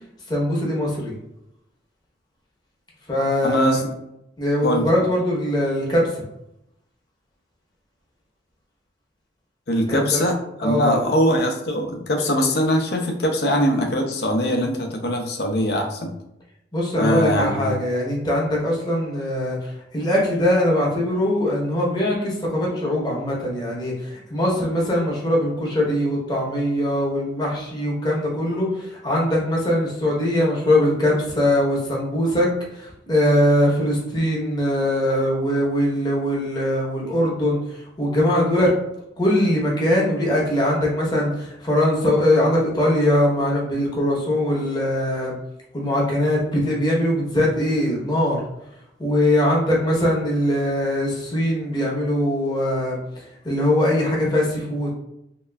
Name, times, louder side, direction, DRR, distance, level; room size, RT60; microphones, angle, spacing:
voice 1, 0.3-1.1 3.1-3.8 4.4-6.2 9.9-10.2 10.6-11.0 16.7-38.7 39.2-45.4 45.7-48.4 49.0-54.9, left 1 dB, 25° left, -3 dB, 0.9 m, -21 dB
voice 2, 3.4-3.9 4.6-4.9 9.7-16.1 17.0-17.7, equal, 60° left, 3 dB, 0.6 m, -22 dB
3.3 x 2.8 x 2.2 m, 0.83 s
head